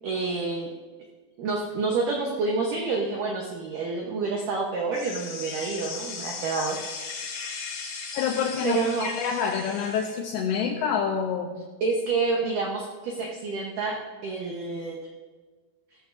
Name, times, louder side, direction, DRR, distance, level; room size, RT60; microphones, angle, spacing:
voice 1, 0.0-0.7 1.4-6.8 8.6-9.1 11.8-15.0, right 4 dB, 80° right, -1 dB, 1.9 m, -28 dB
sound 1, 4.9-10.2, left 5 dB, 55° left, 2.2 m, -37 dB
voice 2, 8.1-11.7, left 7 dB, 85° left, 3 dB, 2.3 m, -27 dB
15.5 x 13.5 x 2.6 m, 1.3 s
omnidirectional pair, 5.3 m